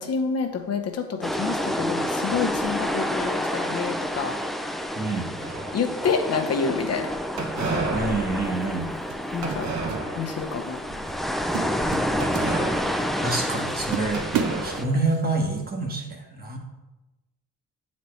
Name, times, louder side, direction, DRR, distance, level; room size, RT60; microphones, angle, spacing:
voice 1, 0.0-4.3 5.7-7.1 9.3-9.7 10.2-10.8, left 5 dB, 55° left, 5 dB, 0.9 m, -28 dB
sound 1, 1.2-14.9, equal, ahead, 0.4 m, -29 dB
voice 2, 4.9-5.3 7.9-8.9 13.2-14.2 14.6-16.6, right 3 dB, 30° right, 1 dB, 1.1 m, -27 dB
sound 2, 5.4-6.2 7.4-10.5 10.9-11.2 12.2-13.8 14.1-15.5, right 3 dB, 65° right, 1.2 m, -32 dB
sound 3, 7.8-8.0 9.1-10.0 10.3-10.6 11.1-11.2 11.5-13.0 13.5-13.6 13.9-15.2, right 8 dB, 85° right, 0.6 m, -31 dB
7.8 x 4.2 x 3.2 m, 1.0 s
cardioid pair, 90°, 30 cm